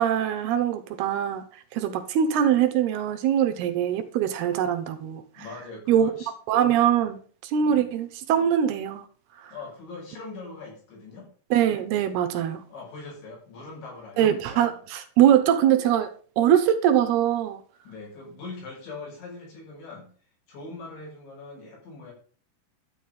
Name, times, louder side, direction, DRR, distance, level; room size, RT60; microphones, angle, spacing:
voice 1, 0.0-1.4 1.7-5.2 5.9-6.1 6.5-9.0 9.4-9.5 11.5-12.6 14.2-16.1 16.4-17.6, right 10 dB, 75° right, 2.8 m, -22 dB
voice 2, 5.4-6.3 7.6-7.9 9.5-11.3 12.7-14.8 17.9-20.1 20.5-22.1, left 3 dB, 90° left, 8.5 m, -41 dB
12.5 x 8.4 x 5.4 m
omnidirectional pair, 5.0 m